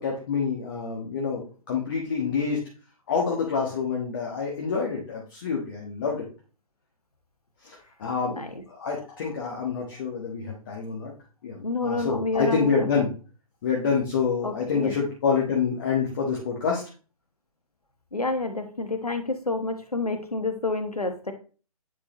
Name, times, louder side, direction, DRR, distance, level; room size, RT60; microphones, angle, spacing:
voice 1, 0.0-2.6 3.1-6.2 7.6-8.4 8.7-11.1 11.4-13.1 13.6-16.8, left 5 dB, 35° left, -1 dB, 1.4 m, -27 dB
voice 2, 8.3-8.6 11.6-12.9 14.4-14.9 18.1-21.3, left 3 dB, 80° left, 8 dB, 1.3 m, -29 dB
9.9 x 4.2 x 3.0 m, 0.37 s
figure-of-eight pair, 135°, 19 cm